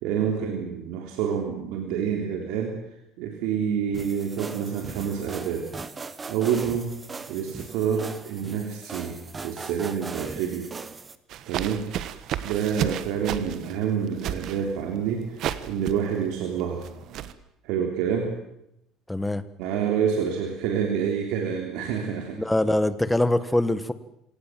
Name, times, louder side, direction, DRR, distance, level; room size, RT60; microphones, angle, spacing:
voice 1, 0.0-2.8 3.2-5.7 6.3-6.9 7.3-10.7 11.5-11.9 12.4-16.8 17.6-18.3 19.6-22.4, right 7 dB, 80° right, 2 dB, 3.4 m, -27 dB
sound 1, 3.9-11.1, right 4 dB, 20° right, 1.4 m, -39 dB
sound 2, 11.3-17.3, right 11 dB, 55° right, 1.4 m, -33 dB
voice 2, 19.1-19.4 22.3-23.9, left 1 dB, 5° left, 13 dB, 1.4 m, -23 dB
27.0 x 17.5 x 7.6 m, 0.82 s
cardioid pair, 135°, 0 cm